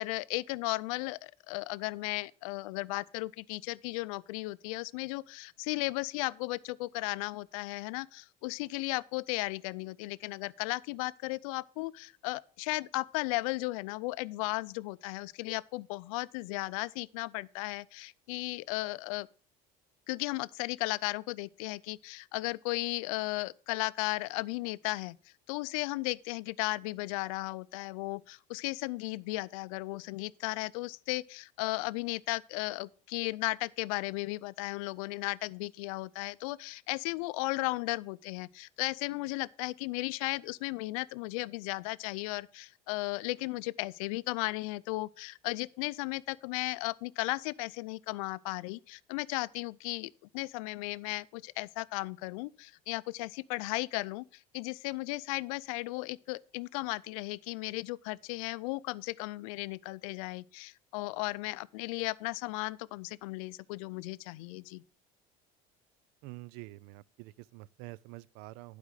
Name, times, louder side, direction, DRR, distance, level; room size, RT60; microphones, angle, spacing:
voice 1, 0.0-19.3 20.1-25.2 25.5-64.8, left 22 dB, 85° left, 0.4 m, -35 dB
voice 2, 66.2-68.8, right 19 dB, 75° right, 0.4 m, -47 dB
11.5 x 5.0 x 6.2 m
supercardioid pair, 105°, 17 cm